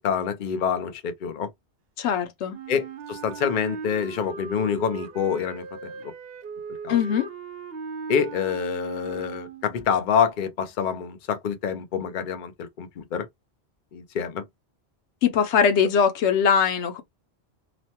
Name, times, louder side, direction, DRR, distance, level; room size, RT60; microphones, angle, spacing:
voice 1, 0.0-1.5 2.7-6.1 6.8-7.0 8.1-13.3 13.9-14.4, left 7 dB, 55° left, 0.7 m, -27 dB
voice 2, 2.0-2.6 6.9-7.3 15.2-17.0, left 7 dB, 90° left, 1.0 m, -21 dB
Wind instrument woodwind instrument, 2.5-9.9, right 5 dB, 65° right, 0.8 m, -38 dB
3.0 x 2.1 x 2.8 m
omnidirectional pair, 1.1 m